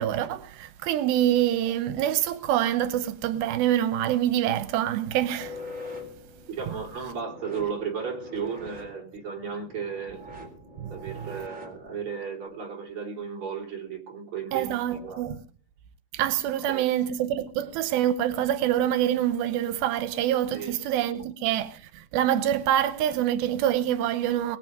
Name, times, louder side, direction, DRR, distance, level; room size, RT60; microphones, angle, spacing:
voice 1, 0.0-5.6 10.8-10.9 14.5-15.4 16.1-24.6, right 11 dB, 90° right, 2.8 m, -26 dB
sound 1, 5.4-12.1, left 2 dB, 20° right, 4.1 m, -43 dB
voice 2, 6.6-10.2 10.9-15.2 16.6-16.8 20.5-20.7, right 6 dB, 35° right, 4.5 m, -34 dB
22.0 x 7.6 x 6.8 m
omnidirectional pair, 4.3 m